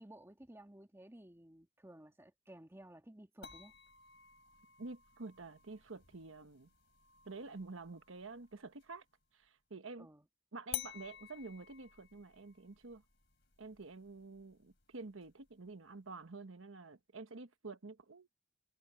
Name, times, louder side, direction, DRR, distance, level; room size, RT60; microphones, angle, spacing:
voice 1, 0.0-3.7 10.0-10.3, right 1 dB, 15° right, 1.6 m, -56 dB
sound 1, 3.4-9.0 10.7-15.7, left 12 dB, 65° left, 4.3 m, -52 dB
voice 2, 4.8-6.7 7.2-9.0 9.3-10.1 10.5-13.0 13.6-18.4, right 3 dB, 90° right, 1.2 m, -49 dB
head